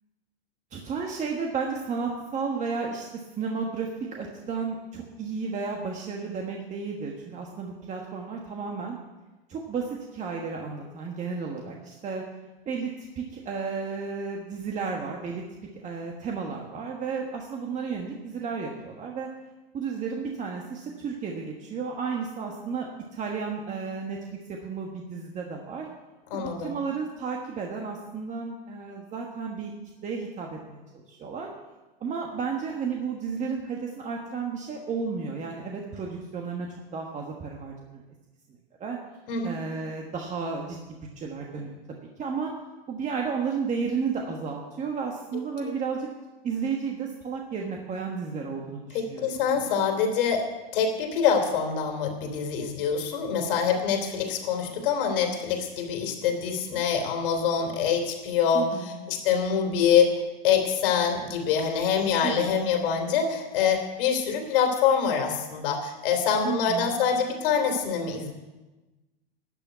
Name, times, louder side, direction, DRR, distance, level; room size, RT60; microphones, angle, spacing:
voice 1, 0.7-9.0 9.5-12.2 12.6-15.4 15.7-19.3 19.7-24.2 24.5-25.9 26.3-29.7 30.0-31.5 32.0-36.7 36.9-38.0 38.8-39.0 39.4-41.8 42.2-42.5 42.9-46.1 46.4-49.8 58.5-59.1 62.2-62.7 66.4-66.9, right 5 dB, 25° right, 0 dB, 1.4 m, -33 dB
voice 2, 26.3-26.8 39.3-39.5 48.9-60.1 60.4-68.3, left 7 dB, 65° left, 4 dB, 3.3 m, -25 dB
12.0 x 6.8 x 9.4 m, 1.1 s
hypercardioid pair, 120°, 29 cm